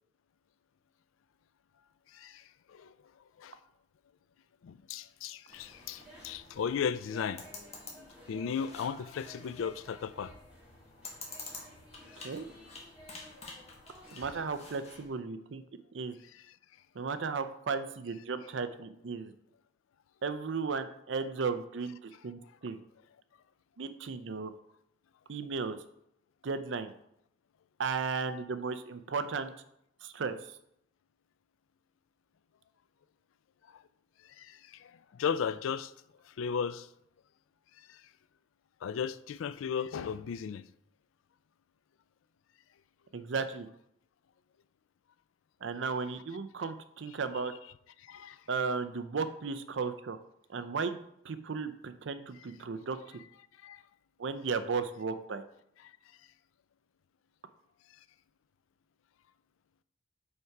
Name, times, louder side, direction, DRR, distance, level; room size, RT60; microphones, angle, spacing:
voice 1, 4.6-7.4 8.3-10.3 34.4-35.9 36.4-36.9 37.9-38.0 38.8-40.6 48.1-48.4 53.6-53.8, left 7 dB, 85° left, 0.3 m, -35 dB
sound 1, 5.5-15.1, left 3 dB, 35° left, 1.4 m, -50 dB
sound 2, 5.5-15.2, equal, 5° right, 1.9 m, -56 dB
voice 2, 14.1-15.6 15.9-16.1 17.0-19.3 20.2-22.8 23.8-24.5 25.3-25.8 26.4-26.9 27.8-29.5 30.0-30.3 43.1-43.7 45.6-47.5 48.5-50.2 50.5-51.0 51.2-53.0 54.2-55.4, right 5 dB, 65° right, 0.5 m, -35 dB
5.4 x 4.6 x 4.8 m
head